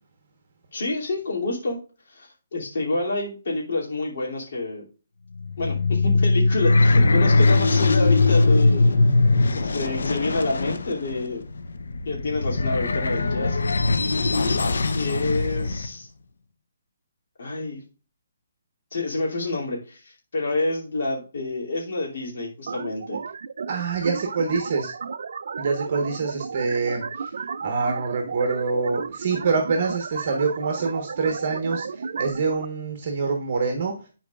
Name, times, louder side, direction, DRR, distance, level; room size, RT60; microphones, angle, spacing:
voice 1, 0.7-1.8 2.1-4.8 5.6-9.0 9.5-11.4 12.1-13.6 14.9-16.1 17.4-17.8 18.9-23.2, left 2 dB, 65° left, -4 dB, 2.7 m, -28 dB
sound 1, 5.4-15.9, left 3 dB, 85° left, 0.8 m, -20 dB
sound 2, 22.7-32.6, right 5 dB, 60° right, 0.4 m, -33 dB
voice 2, 23.7-24.9 25.6-27.3 27.6-33.9, right 4 dB, 40° right, 4 dB, 1.2 m, -25 dB
11.5 x 4.5 x 2.4 m, 0.35 s
hypercardioid pair, 165°, 0 cm